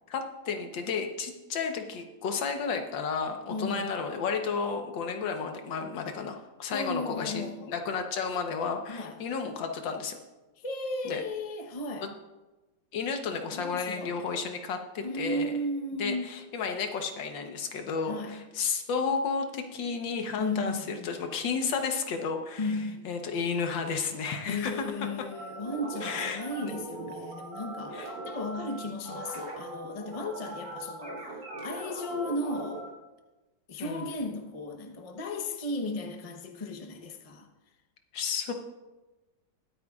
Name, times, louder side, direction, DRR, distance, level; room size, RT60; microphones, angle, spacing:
voice 1, 0.1-10.2 11.1-11.2 12.0-12.1 12.9-15.5 16.0-22.7 23.1-24.9 26.0-26.7 27.9-28.1 33.8-34.1 38.1-38.5, left 5 dB, 85° left, 1.7 m, -32 dB
voice 2, 3.5-3.9 6.7-7.7 8.9-9.2 10.6-12.1 13.5-14.2 15.0-16.3 18.1-18.4 20.4-21.3 22.6-23.1 24.4-31.2 31.6-32.8 33.7-37.5, left 1 dB, 30° left, 0.7 m, -35 dB
sound 1, 25.3-32.9, right 2 dB, 65° right, 3.7 m, -40 dB
22.0 x 9.0 x 2.4 m
omnidirectional pair, 2.0 m